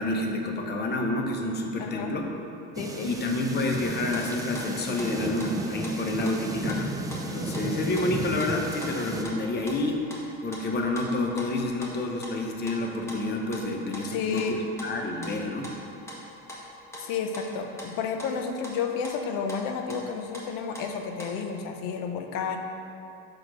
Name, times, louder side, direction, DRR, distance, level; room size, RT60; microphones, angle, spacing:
voice 1, 0.0-2.3 3.0-6.9 7.3-10.0 10.4-15.7, left 2 dB, 30° left, 2 dB, 0.7 m, -29 dB
voice 2, 1.8-2.1 2.8-3.1 14.1-14.7 17.0-22.6, left 6 dB, 80° left, 5 dB, 0.7 m, -31 dB
sound 1, 2.7-9.2, right 2 dB, 10° right, 0.4 m, -34 dB
sound 2, 4.1-21.4, equal, 10° left, 1.1 m, -43 dB
4.8 x 4.2 x 5.9 m, 2.7 s
cardioid pair, 125°, 33 cm